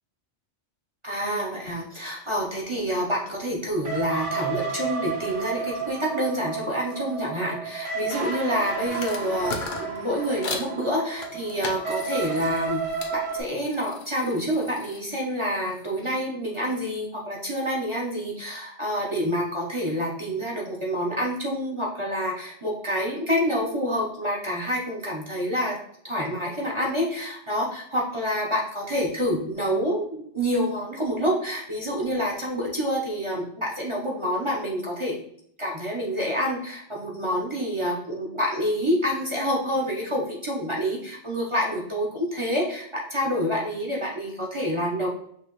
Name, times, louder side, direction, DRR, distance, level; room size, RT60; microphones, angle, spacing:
voice 1, 1.0-12.8 13.1-25.8 26.0-35.2 35.6-45.1, equal, 30° right, -3 dB, 0.9 m, -27 dB
sound 1, 3.8-13.4, right 5 dB, 90° right, 1.5 m, -32 dB
sound 2, 8.9-10.7 11.2-13.1 13.5-16.2, left 4 dB, 50° left, 0.8 m, -38 dB
5.8 x 2.9 x 3.0 m, 0.67 s
omnidirectional pair, 1.2 m